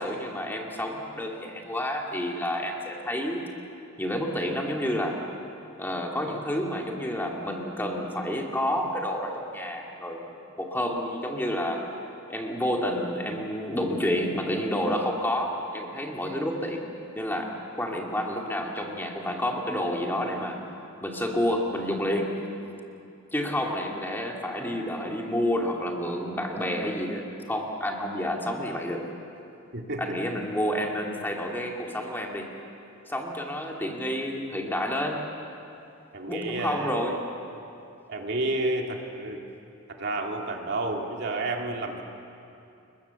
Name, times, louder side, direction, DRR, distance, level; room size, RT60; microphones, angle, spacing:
voice 1, 0.0-3.5 4.0-5.2 5.8-10.2 10.6-11.8 12.3-16.9 17.1-17.5 17.8-20.6 21.0-22.3 23.3-29.0 30.0-32.5 33.0-35.2 36.3-37.2, equal, 10° left, 0 dB, 2.4 m, -29 dB
voice 2, 29.7-30.2 36.1-37.1 38.1-39.4 39.9-42.0, right 2 dB, 55° right, 1 dB, 2.4 m, -30 dB
30.0 x 22.0 x 7.0 m, 2.7 s
head